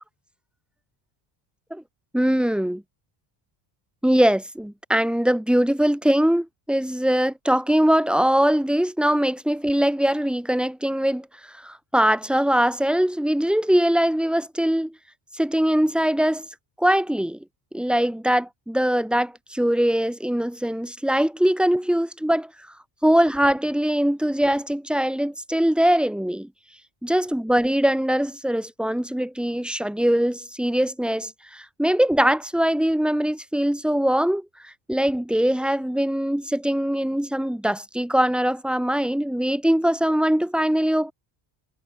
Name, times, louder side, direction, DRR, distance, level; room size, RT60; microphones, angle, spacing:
voice 1, 2.1-2.8 4.0-14.9 15.3-16.5 16.8-17.4 17.7-22.5 23.0-26.5 27.0-41.1, equal, ahead, 6.2 m, -22 dB
cardioid pair, 130°, 49 cm